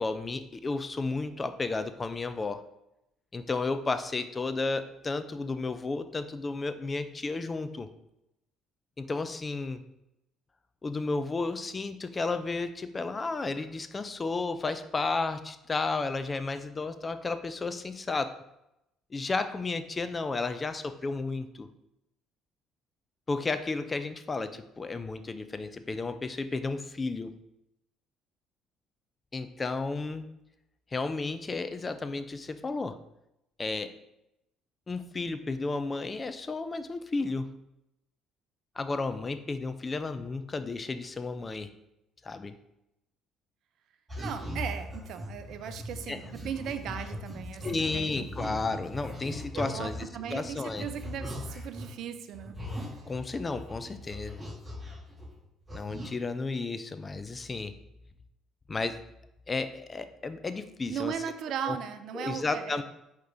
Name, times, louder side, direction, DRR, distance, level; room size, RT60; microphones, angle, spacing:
voice 1, 0.0-2.6 3.3-7.9 9.0-9.8 10.8-18.3 19.1-21.7 23.3-27.3 29.3-30.2 30.9-33.0 33.6-33.9 34.9-37.5 38.8-41.7 42.2-42.5 46.1-46.2 47.6-50.9 53.1-54.4 55.7-57.7 58.7-59.0 59.5-61.1 61.7-61.8 62.1-62.8, left 3 dB, 25° left, 10 dB, 0.3 m, -33 dB
sound 1, 44.1-52.0 52.3-55.4 55.7-56.1, left 1 dB, 20° right, 1.0 m, -40 dB
voice 2, 44.2-48.3 49.5-52.6 60.9-62.8, right 8 dB, 55° right, 9 dB, 0.3 m, -37 dB
4.6 x 2.9 x 3.6 m, 0.85 s
figure-of-eight pair, 50°, 0 cm